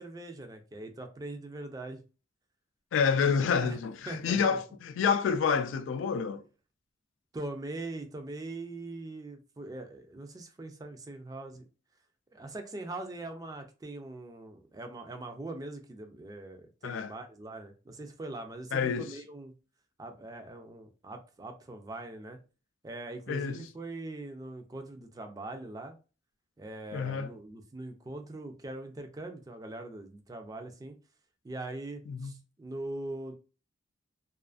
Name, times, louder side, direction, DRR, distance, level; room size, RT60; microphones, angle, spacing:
voice 1, 0.0-2.0 3.6-3.8 4.1-4.6 7.3-11.6 12.3-19.5 20.0-22.4 22.8-26.0 26.6-31.0 31.4-33.3, right 2 dB, 20° right, 0.3 m, -42 dB
voice 2, 2.9-6.4 16.8-17.1 18.7-19.1 23.3-23.6 26.9-27.3 32.1-32.3, left 6 dB, 80° left, 0.3 m, -28 dB
2.4 x 2.4 x 2.3 m
head